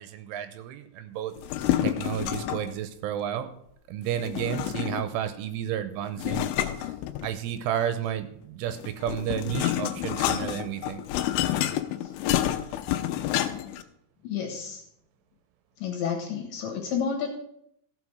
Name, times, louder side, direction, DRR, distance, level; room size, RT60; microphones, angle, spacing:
voice 1, 0.0-1.3 1.8-3.5 3.9-6.5 7.2-11.0, right 10 dB, 85° right, 10 dB, 3.1 m, -31 dB
sound 1, 1.4-2.7 4.2-5.2 6.2-7.6 8.7-13.8, left 12 dB, 85° left, 3.1 m, -28 dB
voice 2, 14.2-14.8 15.8-17.3, left 7 dB, 65° left, 2 dB, 2.8 m, -30 dB
14.5 x 6.1 x 6.1 m, 0.71 s
omnidirectional pair, 5.8 m